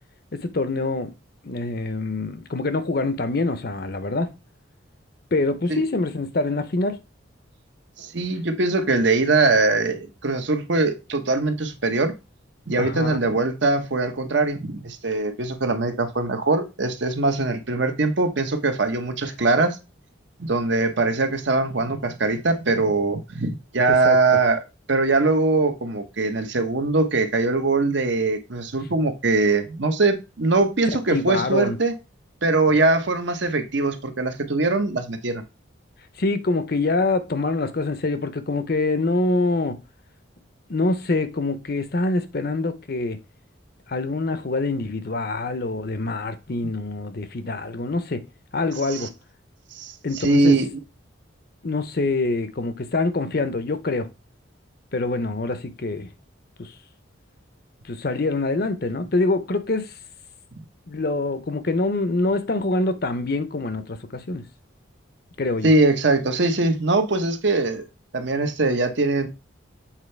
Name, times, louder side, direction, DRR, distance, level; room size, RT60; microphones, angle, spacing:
voice 1, 0.3-1.1 1.4-4.3 5.3-7.0 12.8-13.2 23.9-24.4 31.1-31.8 36.2-39.8 40.7-43.2 43.9-48.2 48.5-49.1 50.0-50.6 51.6-54.1 54.9-56.1 56.6-56.7 57.8-59.9 60.9-64.4 65.4-65.7, left 2 dB, 50° left, 0.7 m, -25 dB
voice 2, 8.0-12.1 12.7-19.8 20.4-24.6 24.9-31.9 32.4-35.4 48.9-49.1 49.8-50.7 65.6-67.8 68.1-69.3, right 3 dB, 65° right, 0.9 m, -22 dB
7.5 x 4.3 x 3.3 m
head